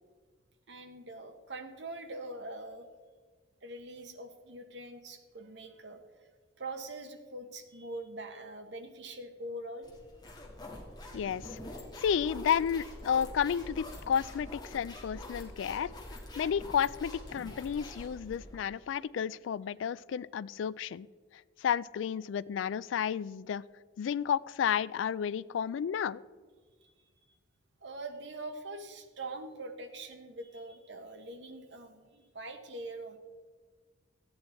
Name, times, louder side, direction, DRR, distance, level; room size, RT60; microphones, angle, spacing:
voice 1, 0.7-2.9 3.6-6.0 6.6-9.9 26.8-26.9 27.8-33.2, right 2 dB, 65° right, 6 dB, 1.2 m, -43 dB
sound 1, 9.8-18.6, left 1 dB, 20° left, 1.7 m, -45 dB
voice 2, 11.1-11.6 12.0-15.9 16.4-21.1 21.6-23.6 24.0-26.2, left 8 dB, 80° left, 20 dB, 0.3 m, -31 dB
14.0 x 8.8 x 4.3 m, 1.5 s
head